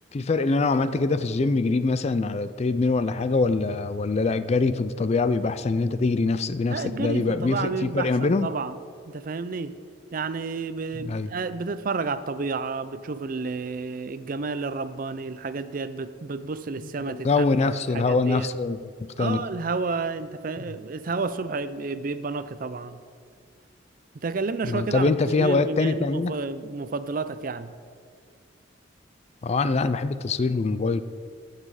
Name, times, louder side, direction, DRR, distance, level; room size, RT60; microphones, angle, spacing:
voice 1, 0.1-8.5 10.9-11.3 17.1-19.4 24.6-26.3 29.4-31.0, left 3 dB, 35° left, 13 dB, 0.4 m, -24 dB
voice 2, 6.7-8.8 9.1-9.7 10.1-17.5 17.9-18.5 19.2-23.0 24.1-27.7, right 4 dB, 45° right, 13 dB, 0.5 m, -31 dB
14.5 x 7.4 x 4.8 m, 2.1 s
head